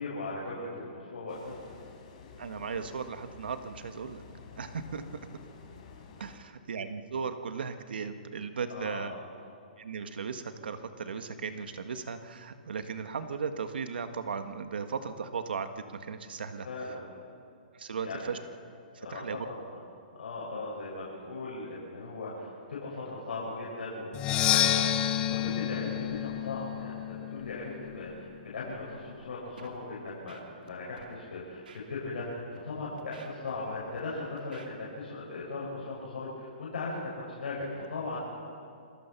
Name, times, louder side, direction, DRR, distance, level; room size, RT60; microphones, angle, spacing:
voice 1, 0.0-1.6 8.7-9.3 16.6-17.0 18.0-18.3 19.0-19.5 20.2-27.0 27.3-38.3, left 3 dB, 80° left, -6 dB, 7.2 m, -38 dB
sound 1, 1.3-6.4, left 5 dB, 45° left, 4.3 m, -51 dB
voice 2, 2.4-4.2 4.6-5.0 6.2-9.1 9.8-16.9 17.7-18.4 18.9-19.5, right 5 dB, 80° right, 8 dB, 1.7 m, -37 dB
Percussion, 24.1-27.9, left 11 dB, 20° left, 0.8 m, -29 dB
Scratching (performance technique), 29.6-29.8 30.1-30.7 31.0-31.1 31.7-31.8 32.4-32.6 33.0-34.0 34.4-34.7, right 6 dB, 65° right, 2.9 m, -53 dB
27.0 x 20.5 x 6.1 m, 2.3 s
hypercardioid pair, 165°, 5 cm